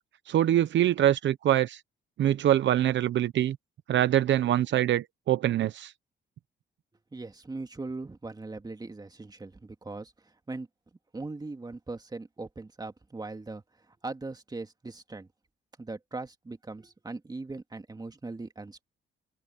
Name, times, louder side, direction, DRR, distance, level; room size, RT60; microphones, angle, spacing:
voice 1, 0.3-1.8 2.2-3.6 3.9-5.9, right 12 dB, 70° right, 0.9 m, -24 dB
voice 2, 7.1-10.7 11.1-15.3 15.8-18.8, right 3 dB, 20° right, 2.5 m, -40 dB
cardioid pair, 90°, 20 cm